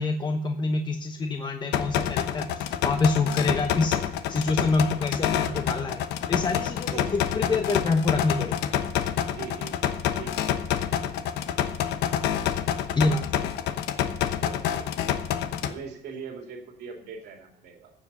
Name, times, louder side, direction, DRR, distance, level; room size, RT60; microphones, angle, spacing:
voice 1, 0.0-4.0 4.3-6.0 6.3-8.7 13.0-13.2, left 3 dB, 25° left, 5 dB, 0.9 m, -26 dB
sound 1, 1.7-15.7, left 10 dB, 85° left, 1.0 m, -28 dB
voice 2, 6.9-7.2 9.2-9.9 10.2-10.4 14.4-14.9 15.6-17.9, right 5 dB, 80° right, 3 dB, 2.8 m, -41 dB
15.0 x 7.9 x 5.5 m, 0.80 s
cardioid pair, 110°, 17 cm